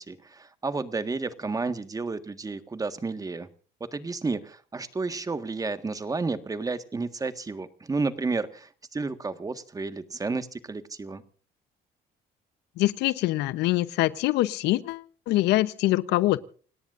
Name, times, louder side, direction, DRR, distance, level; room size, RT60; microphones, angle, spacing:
voice 1, 0.0-3.5 3.8-11.2, right 3 dB, 20° right, 1.7 m, -31 dB
voice 2, 12.8-16.4, left 17 dB, 85° left, 0.9 m, -24 dB
29.0 x 18.0 x 2.6 m
cardioid pair, 110°, 17 cm